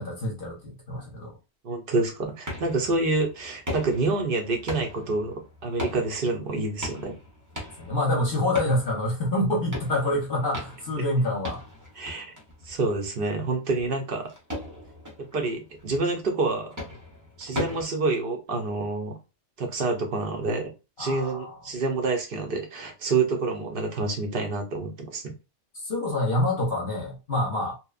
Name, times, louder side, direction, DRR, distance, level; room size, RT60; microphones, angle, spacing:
voice 1, 0.0-1.3 7.8-11.6 21.0-21.5 25.7-27.7, left 1 dB, 55° left, 0.8 m, -27 dB
voice 2, 1.6-7.1 12.0-12.3 12.6-14.3 15.3-16.7 17.4-19.2 19.6-20.7 21.0-25.3, right 3 dB, 55° right, 0.7 m, -27 dB
sound 1, 2.5-17.8, left 1 dB, 20° right, 0.6 m, -39 dB
2.8 x 2.0 x 2.3 m
omnidirectional pair, 1.3 m